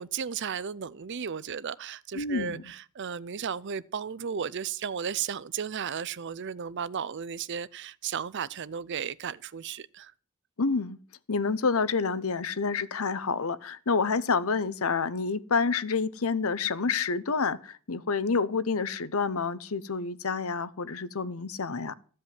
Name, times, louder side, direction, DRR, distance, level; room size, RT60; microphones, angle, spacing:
voice 1, 0.0-10.1, right 7 dB, 50° right, 0.5 m, -34 dB
voice 2, 2.1-2.6 10.6-11.0 11.3-21.9, left 4 dB, 70° left, 0.8 m, -28 dB
14.5 x 5.4 x 9.5 m
head